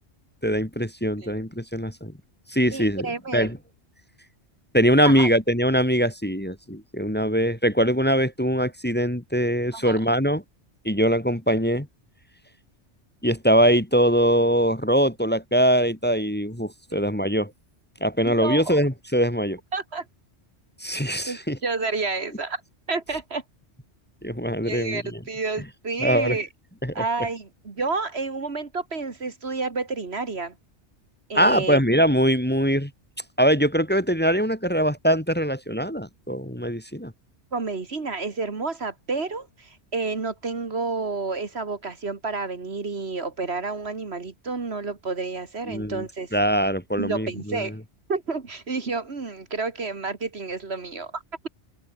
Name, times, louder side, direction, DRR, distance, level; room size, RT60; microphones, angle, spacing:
voice 1, 0.4-2.1 2.5-3.1 3.3-3.6 4.7-10.4 10.8-11.9 13.2-17.5 18.0-19.6 20.8-21.6 24.2-25.2 26.0-26.4 26.8-27.0 31.3-32.9 33.4-37.1 45.7-46.0 46.3-47.7, equal, 10° left, 2.4 m, -22 dB
voice 2, 2.7-3.5 5.0-5.3 9.7-10.0 16.9-17.0 18.2-18.8 19.7-20.1 21.3-22.6 22.9-23.4 24.6-26.5 26.9-30.6 31.3-31.8 37.5-46.3 47.0-47.7 48.1-51.5, right 4 dB, 60° right, 2.2 m, -30 dB
open air
omnidirectional pair, 1.2 m